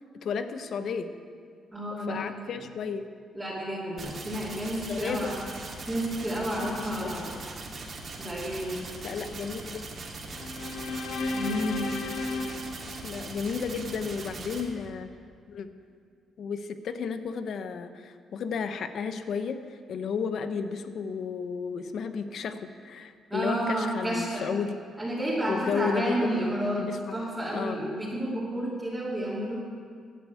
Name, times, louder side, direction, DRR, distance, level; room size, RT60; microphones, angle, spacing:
voice 1, 0.2-1.1 2.1-3.0 4.9-5.3 6.6-6.7 7.0-7.1 9.0-9.9 13.0-15.1 15.5-15.7 16.4-19.6 19.9-24.8 25.5-26.2 26.8-27.2 27.5-27.8, left 6 dB, 65° left, 10 dB, 0.8 m, -33 dB
voice 2, 1.7-2.2 3.3-5.4 5.9-7.3 8.2-8.8 11.3-11.9 23.3-24.5 25.0-26.9 27.1-29.6, right 1 dB, 10° right, -8 dB, 2.8 m, -31 dB
sound 1, 4.0-14.6, right 3 dB, 45° right, 2.6 m, -40 dB
sound 2, 10.3-13.7, left 3 dB, 90° left, 1.1 m, -34 dB
12.5 x 8.1 x 8.2 m, 2.2 s
cardioid pair, 90°, 0 cm